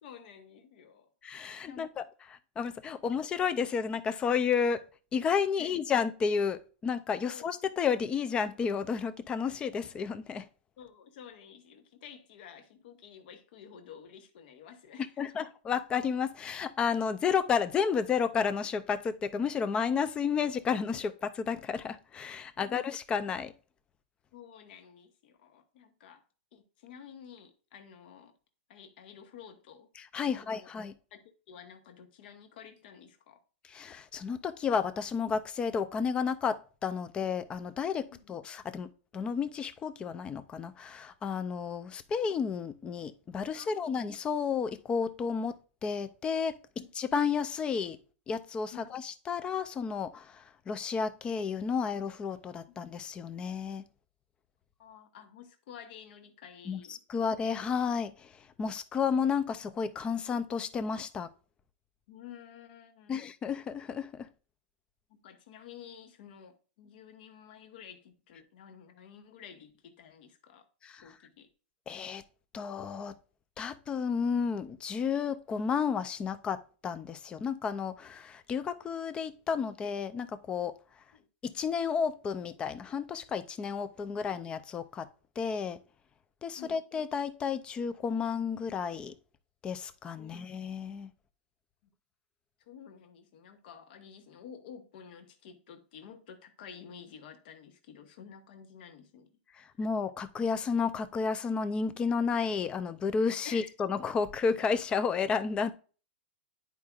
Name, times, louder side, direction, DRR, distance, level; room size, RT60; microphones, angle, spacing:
voice 1, 0.0-1.1 1.7-1.9 5.6-5.8 7.3-7.6 10.8-15.4 22.6-22.8 24.3-26.2 26.5-28.3 28.7-29.9 30.3-30.7 31.1-33.4 38.1-38.3 43.5-44.0 46.8-46.9 48.7-48.9 52.7-52.8 54.8-57.2 62.1-63.2 65.1-70.7 71.0-71.5 81.1-81.3 86.6-86.8 90.2-90.3 91.8-91.9 92.7-99.3 103.4-103.7, left 8 dB, 55° left, 1.1 m, -51 dB
voice 2, 1.2-2.0 2.6-4.8 5.1-10.5 15.2-23.5 30.0-30.9 33.7-38.9 39.1-45.5 45.8-46.6 47.0-48.0 48.3-53.9 56.7-58.3 58.6-61.3 63.1-64.3 70.8-71.0 71.9-72.2 72.5-73.2 73.6-80.8 81.4-85.1 85.4-85.8 86.4-89.1 89.6-91.1 99.8-105.7, left 6 dB, 15° left, 0.4 m, -32 dB
10.5 x 4.7 x 2.4 m
supercardioid pair, 155°, 6 cm